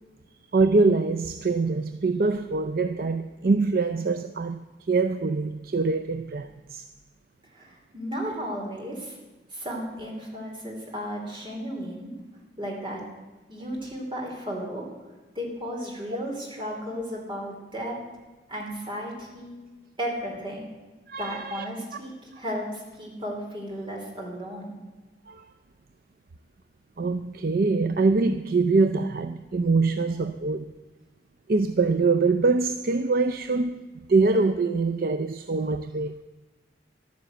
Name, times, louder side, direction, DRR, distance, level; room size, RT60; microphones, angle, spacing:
voice 1, 0.5-6.9 21.1-21.7 25.3-25.5 27.0-30.7 31.5-36.1, right 3 dB, 50° right, 0.4 m, -24 dB
voice 2, 7.5-9.2 9.5-12.1 12.6-13.0 13.5-14.8 15.3-18.0 18.5-19.5 20.0-20.6 21.2-24.7, equal, 25° right, 2.9 m, -34 dB
11.5 x 9.5 x 7.6 m
head